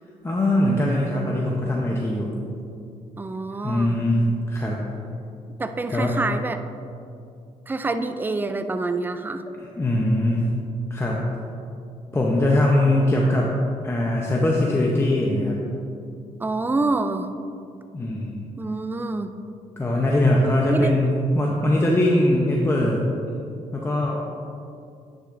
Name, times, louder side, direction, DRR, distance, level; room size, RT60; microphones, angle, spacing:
voice 1, 0.2-2.3 3.6-4.8 5.9-6.2 9.6-10.4 10.9-11.2 12.1-13.5 13.8-15.6 17.9-18.3 19.8-23.0 23.7-24.2, left 1 dB, 20° left, -2 dB, 0.8 m, -21 dB
voice 2, 3.2-4.0 5.6-6.6 7.7-9.4 16.4-17.3 18.6-19.3 20.7-20.9, right 3 dB, 15° right, 9 dB, 0.4 m, -26 dB
9.7 x 6.4 x 2.6 m, 2.5 s
cardioid pair, 85°, 14 cm